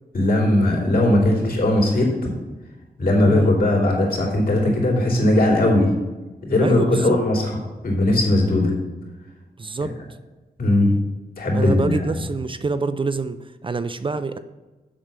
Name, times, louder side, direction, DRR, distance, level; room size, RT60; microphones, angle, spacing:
voice 1, 0.1-2.1 3.0-6.0 6.4-8.7 10.6-11.0 11.4-12.2, left 1 dB, 65° left, -1 dB, 3.1 m, -19 dB
voice 2, 6.6-7.2 9.6-9.9 11.5-14.4, right 4 dB, 30° right, 11 dB, 0.5 m, -26 dB
7.4 x 6.0 x 6.7 m, 1.1 s
wide cardioid pair, 100°, 16 cm